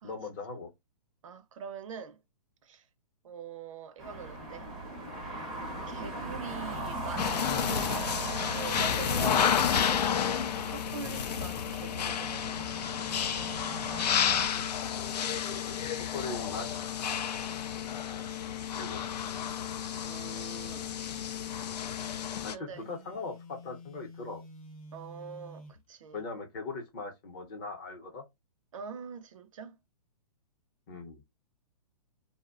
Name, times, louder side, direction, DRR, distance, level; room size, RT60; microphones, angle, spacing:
voice 1, 0.0-0.7 14.5-14.7 16.1-16.7 18.7-19.1 22.4-24.4 26.1-28.2 30.9-31.2, left 3 dB, 30° left, 0.7 m, -40 dB
voice 2, 1.2-2.2 2.6-2.9 3.2-4.7 5.9-12.7 20.0-20.9 22.5-22.9 24.9-26.2 28.7-29.8, right 5 dB, 55° right, 0.4 m, -44 dB
sound 1, 4.0-14.5, right 1 dB, ahead, 0.5 m, -39 dB
sound 2, 7.2-22.5, left 8 dB, 90° left, 0.4 m, -31 dB
Telephone, 22.7-25.8, left 1 dB, 60° left, 0.8 m, -49 dB
2.6 x 2.1 x 2.4 m
hypercardioid pair, 155°, 20 cm